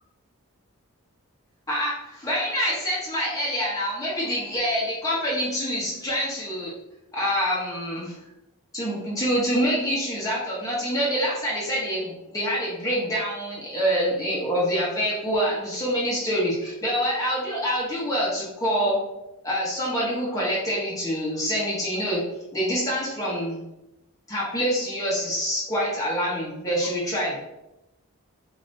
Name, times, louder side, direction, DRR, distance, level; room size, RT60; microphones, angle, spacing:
voice 1, 1.7-6.7 7.1-8.2 8.7-19.0 19.4-22.2 22.5-23.6 24.3-27.4, equal, 15° left, -6 dB, 1.1 m, -26 dB
7.0 x 2.8 x 2.6 m, 0.93 s
head